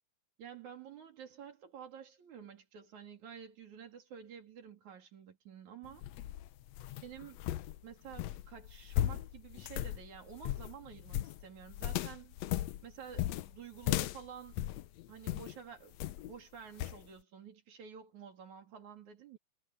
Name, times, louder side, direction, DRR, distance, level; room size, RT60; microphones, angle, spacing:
voice 1, 0.4-6.1 7.0-7.4 7.8-12.4 12.8-14.6 15.1-19.4, right 8 dB, 70° right, 4.4 m, -50 dB
sound 1, 5.8-15.6 16.0-16.4 16.8-17.0, left 13 dB, 75° left, 1.8 m, -37 dB
omnidirectional pair, 3.4 m